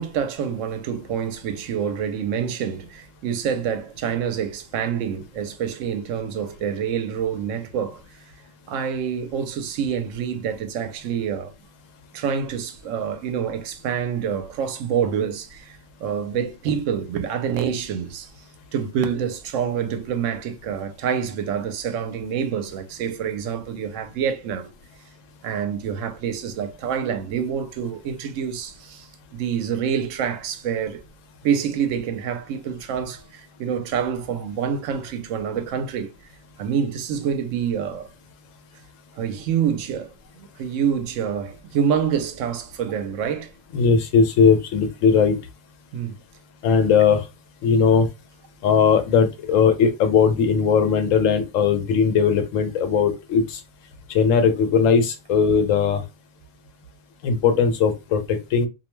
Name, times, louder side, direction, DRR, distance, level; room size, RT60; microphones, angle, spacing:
voice 1, 0.0-8.0 8.7-11.5 12.1-18.3 18.7-24.7 25.4-31.0 31.4-36.1 36.6-38.1 39.2-43.5 45.9-46.1, right 7 dB, 75° right, 0.9 m, -27 dB
voice 2, 43.7-45.4 46.6-47.2 47.6-48.1 48.6-53.6 54.1-56.0 57.2-58.7, left 6 dB, 80° left, 1.0 m, -19 dB
2.5 x 2.1 x 3.0 m
omnidirectional pair, 1.3 m